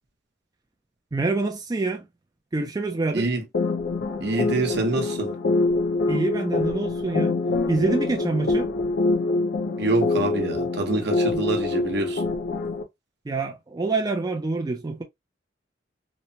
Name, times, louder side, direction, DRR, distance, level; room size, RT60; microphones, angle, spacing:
voice 1, 1.1-2.0 2.5-3.3 6.1-7.4 7.7-8.7 11.3-11.4 13.3-15.0, right 3 dB, 20° right, 0.4 m, -26 dB
voice 2, 3.1-3.4 4.2-5.3 9.8-12.2, right 2 dB, 65° right, 0.8 m, -26 dB
sound 1, 3.5-12.8, left 3 dB, 65° left, 0.6 m, -25 dB
3.0 x 2.1 x 2.6 m
head